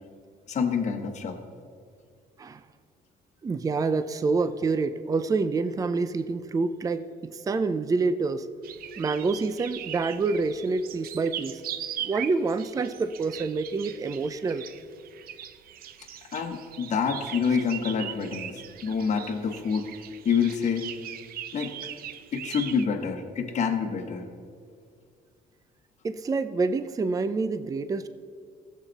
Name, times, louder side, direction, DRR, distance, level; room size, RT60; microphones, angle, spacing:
voice 1, 0.5-1.4 16.3-19.9 20.2-20.9 21.5-21.7 22.3-24.3, left 6 dB, 45° left, 4 dB, 1.2 m, -27 dB
voice 2, 3.4-8.5 9.0-11.6 12.0-14.7 26.0-28.1, right 4 dB, 20° right, 12 dB, 0.5 m, -27 dB
sound 1, 8.6-22.9, right 10 dB, 60° right, 0.6 m, -40 dB
16.0 x 7.4 x 4.1 m, 2.2 s
cardioid pair, 110°, 17 cm